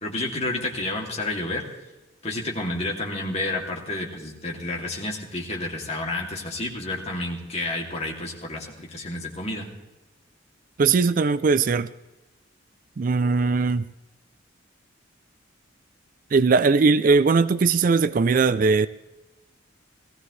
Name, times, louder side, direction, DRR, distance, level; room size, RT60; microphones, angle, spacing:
voice 1, 0.0-1.6 2.2-9.7, left 2 dB, 30° left, 2.6 m, -30 dB
voice 2, 10.8-11.9 13.0-13.9 16.3-18.9, right 4 dB, 45° right, 0.4 m, -19 dB
18.5 x 15.5 x 3.2 m
head